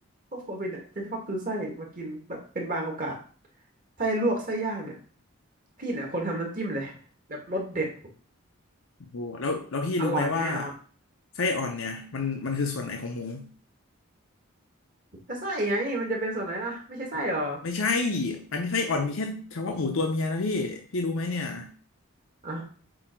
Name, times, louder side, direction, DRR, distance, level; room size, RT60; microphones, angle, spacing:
voice 1, 0.3-3.2 4.0-4.9 5.8-6.9 7.3-7.9 10.0-10.7 15.3-17.6 22.4-22.6, right 1 dB, 40° right, 0 dB, 1.8 m, -30 dB
voice 2, 9.1-10.7 11.4-13.5 17.6-21.7, left 3 dB, 75° left, 2 dB, 0.7 m, -29 dB
7.7 x 2.8 x 4.5 m, 0.42 s
head